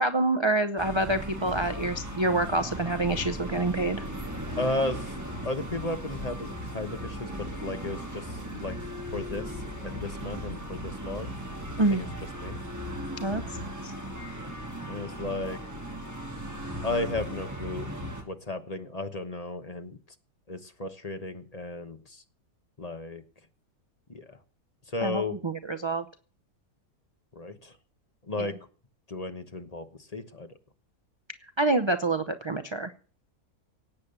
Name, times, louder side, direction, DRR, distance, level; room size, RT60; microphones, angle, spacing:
voice 1, 0.0-4.0 11.8-12.0 13.2-13.9 25.0-26.0 28.4-28.5 31.6-32.9, right 2 dB, 40° right, 9 dB, 0.4 m, -27 dB
sound 1, 0.8-18.2, equal, 10° right, 2.5 m, -37 dB
voice 2, 4.6-5.0 5.4-8.8 9.1-11.3 11.9-12.1 12.4-12.6 14.9-15.6 16.8-17.9 18.3-20.0 20.5-22.2 22.8-23.2 24.1-24.4 24.9-25.4 27.3-27.7 28.3-28.6 29.1-30.5, left 2 dB, 30° left, 8 dB, 1.1 m, -34 dB
17.5 x 8.6 x 6.8 m, 0.42 s
omnidirectional pair, 1.6 m